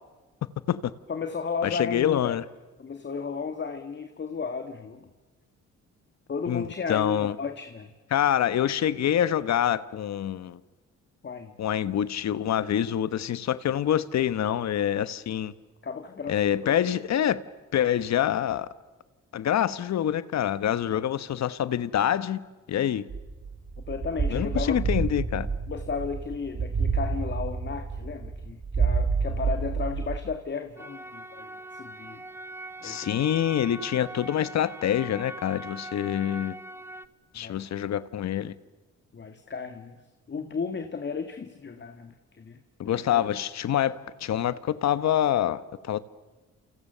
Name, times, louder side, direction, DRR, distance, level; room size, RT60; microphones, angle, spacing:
voice 1, 1.1-2.4 2.8-5.1 6.3-7.9 11.2-11.5 15.8-16.9 23.9-24.8 25.7-32.2 32.8-33.2 37.3-37.6 39.1-40.0 40.3-43.3, left 5 dB, 35° left, 1.8 m, -34 dB
voice 2, 1.6-2.4 6.4-7.3 8.1-10.6 11.6-15.5 16.3-17.4 17.7-18.7 19.3-22.4 22.7-23.0 24.3-25.5 32.8-36.6 37.3-38.5 42.8-46.0, left 10 dB, 60° left, 1.2 m, -26 dB
sound 1, 23.1-30.2, right 5 dB, 40° right, 3.6 m, -29 dB
sound 2, 30.8-37.0, right 1 dB, 10° right, 1.2 m, -42 dB
29.0 x 28.5 x 6.8 m
cardioid pair, 90°, 30 cm